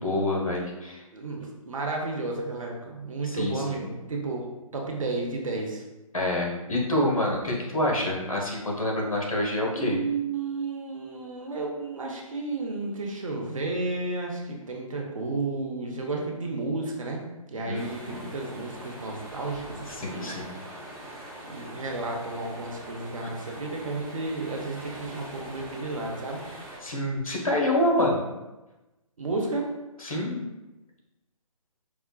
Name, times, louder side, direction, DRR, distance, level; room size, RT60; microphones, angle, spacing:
voice 1, 0.0-1.0 3.2-3.8 6.1-10.0 17.6-18.3 19.9-20.5 26.8-28.3 30.0-30.4, left 1 dB, 70° left, -1 dB, 1.0 m, -27 dB
voice 2, 1.1-4.4 4.7-5.8 9.7-17.2 17.5-20.3 21.5-26.4 29.2-29.7, right 3 dB, 65° right, 0 dB, 0.8 m, -32 dB
sound 1, 17.7-26.8, right 1 dB, 15° right, 1.0 m, -43 dB
4.8 x 2.2 x 2.2 m, 1.0 s
figure-of-eight pair, 140°, 18 cm